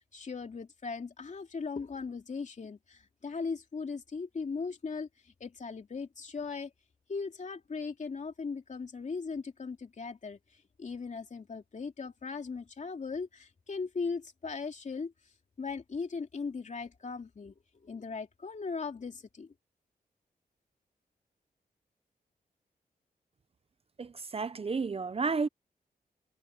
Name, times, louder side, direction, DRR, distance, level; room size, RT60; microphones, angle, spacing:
voice 1, 0.1-5.1 5.4-6.7 7.1-10.4 10.8-15.1 15.6-17.5 17.8-19.5, left 4 dB, 50° left, 2.9 m, -38 dB
voice 2, 24.0-25.5, right 4 dB, 40° right, 0.8 m, -32 dB
cardioid pair, 90°, 16 cm